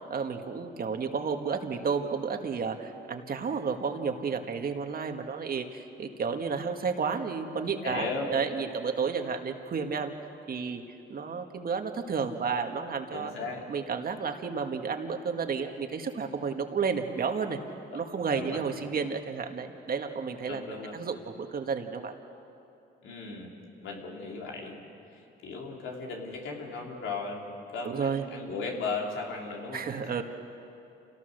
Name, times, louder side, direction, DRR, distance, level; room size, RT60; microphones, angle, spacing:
voice 1, 0.1-10.1 10.5-10.8 11.1-13.3 13.7-17.6 17.9-20.7 20.9-22.1 27.8-28.2 29.7-30.2, right 5 dB, 50° right, 5 dB, 1.8 m, -31 dB
voice 2, 7.8-8.3 13.1-13.6 17.9-18.0 18.3-18.6 20.5-21.0 23.0-23.5 23.8-24.8 25.4-30.1, left 4 dB, 85° left, 0 dB, 3.4 m, -36 dB
28.0 x 17.5 x 6.6 m, 2.7 s
cardioid pair, 90°, 20 cm